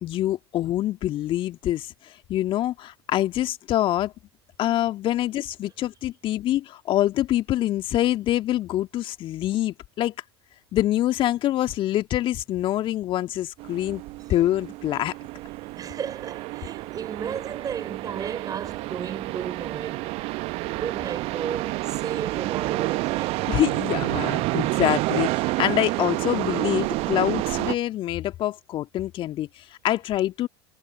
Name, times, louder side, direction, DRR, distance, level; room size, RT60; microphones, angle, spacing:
voice 1, 0.0-4.1 4.6-10.1 10.7-14.0 14.3-15.2 23.5-30.5, left 13 dB, 40° left, 1.9 m, -25 dB
sound 1, 13.6-27.8, right 21 dB, 45° right, 1.0 m, -29 dB
voice 2, 15.8-20.1 20.7-23.4, right 7 dB, 25° right, 5.9 m, -34 dB
figure-of-eight pair, 80°, 14 cm